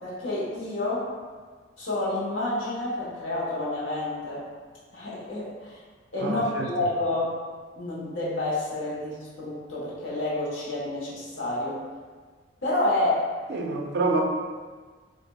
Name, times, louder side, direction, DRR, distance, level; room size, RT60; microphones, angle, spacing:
voice 1, 0.0-1.1 1.8-4.4 4.9-5.8 6.1-7.3 7.7-11.8 12.6-13.3, left 2 dB, 85° left, -8 dB, 1.1 m, -29 dB
voice 2, 6.2-6.7 13.5-14.2, right 3 dB, 55° right, 1 dB, 0.4 m, -27 dB
4.0 x 2.6 x 2.2 m, 1.5 s
head